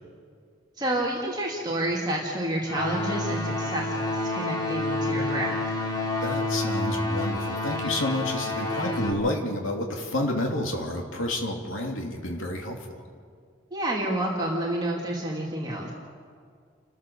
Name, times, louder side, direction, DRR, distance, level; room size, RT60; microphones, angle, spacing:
voice 1, 0.8-5.6 13.7-15.9, right 1 dB, 20° right, -3 dB, 2.8 m, -29 dB
sound 1, 2.7-9.1, left 2 dB, 20° left, 2.6 m, -29 dB
voice 2, 6.2-13.0, left 1 dB, 90° left, 1 dB, 3.0 m, -30 dB
30.0 x 13.5 x 7.0 m, 2.1 s
head